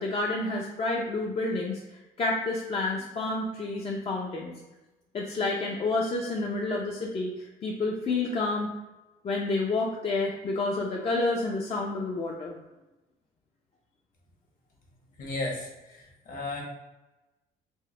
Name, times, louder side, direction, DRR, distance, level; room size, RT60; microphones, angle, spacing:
voice 1, 0.0-4.5 5.1-8.7 9.2-12.5, left 2 dB, 35° left, -2 dB, 0.5 m, -29 dB
voice 2, 15.2-16.6, left 2 dB, 55° left, -1 dB, 1.2 m, -35 dB
4.4 x 2.1 x 3.2 m, 1.0 s
cardioid pair, 110°, 17 cm